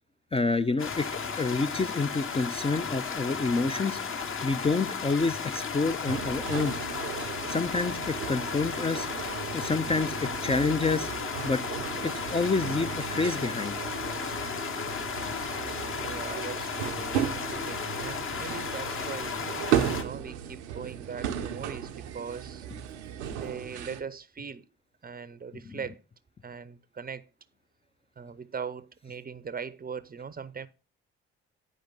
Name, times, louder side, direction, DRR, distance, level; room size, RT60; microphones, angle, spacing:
voice 1, 0.3-4.0 4.4-6.7 7.5-9.1 9.5-11.1 11.4-11.6 12.0-13.8 14.2-14.3 25.7-25.8, left 3 dB, 15° left, 0.5 m, -28 dB
sound 1, 0.8-20.0, left 5 dB, 40° left, 1.2 m, -34 dB
sound 2, 6.1-24.0, right 10 dB, 80° right, 0.8 m, -35 dB
sound 3, 13.2-19.8, left 4 dB, 70° left, 4.3 m, -47 dB
voice 2, 16.0-19.4 19.9-22.6 23.4-24.7 25.0-26.0 26.4-27.3 28.2-30.7, right 6 dB, 25° right, 0.7 m, -40 dB
10.0 x 5.0 x 3.9 m
figure-of-eight pair, 40°, 34 cm